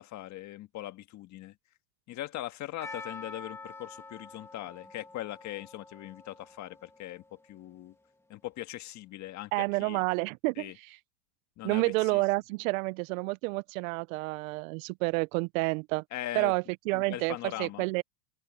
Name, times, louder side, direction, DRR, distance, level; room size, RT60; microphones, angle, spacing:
voice 1, 0.0-1.5 2.1-7.9 8.3-9.5 9.8-10.0 10.5-10.8 11.6-12.2 16.1-16.5 16.9-17.8, left 15 dB, 35° left, 1.7 m, -40 dB
Percussion, 2.8-7.7, left 3 dB, 5° left, 1.8 m, -47 dB
voice 2, 9.5-10.7 11.6-16.0 16.4-18.0, right 24 dB, 60° right, 0.5 m, -29 dB
open air
supercardioid pair, 140°, 47 cm